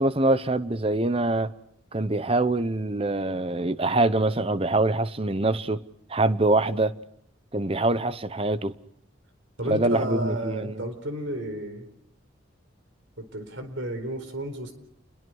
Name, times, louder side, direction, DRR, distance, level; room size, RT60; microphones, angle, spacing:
voice 1, 0.0-1.5 1.9-5.8 6.1-6.9 7.5-8.7 9.7-10.9, right 2 dB, 30° right, 0.9 m, -24 dB
voice 2, 9.6-11.9 13.2-14.7, right 1 dB, 65° right, 4.4 m, -32 dB
29.5 x 22.0 x 6.3 m
head